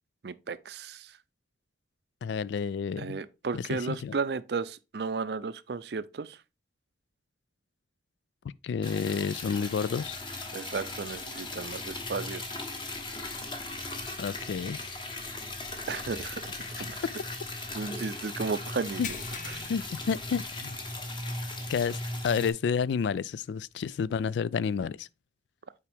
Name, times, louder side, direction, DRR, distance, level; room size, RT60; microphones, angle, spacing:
voice 1, 0.2-1.1 3.0-6.4 10.5-12.4 15.9-16.4 16.7-17.0 17.7-19.2 19.5-19.7, right 4 dB, 60° right, 0.5 m, -34 dB
voice 2, 2.2-3.2 3.5-4.1 8.6-10.2 14.2-14.8 16.8-16.9 19.0-19.1 19.7-20.8 21.7-25.1, left 6 dB, 75° left, 0.3 m, -30 dB
Liquid, 8.8-22.5, left 2 dB, 25° left, 1.1 m, -38 dB
sound 1, 19.0-20.9 21.3-21.5 21.9-22.0 23.7-23.8, left 5 dB, 40° left, 0.8 m, -42 dB
8.5 x 4.7 x 3.4 m
head